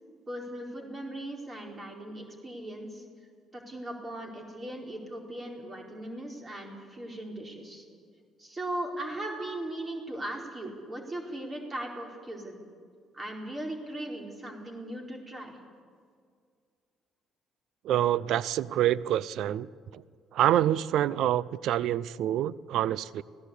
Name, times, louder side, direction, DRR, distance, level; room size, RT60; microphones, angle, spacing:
voice 1, 0.3-3.0 3.5-7.8 8.4-12.6 13.1-15.6, right 1 dB, 30° right, 1 dB, 4.4 m, -38 dB
voice 2, 17.8-19.7 19.9-20.0 20.3-23.2, right 12 dB, 70° right, 20 dB, 0.6 m, -26 dB
25.0 x 16.5 x 8.5 m, 2.1 s
supercardioid pair, 65°, 0 cm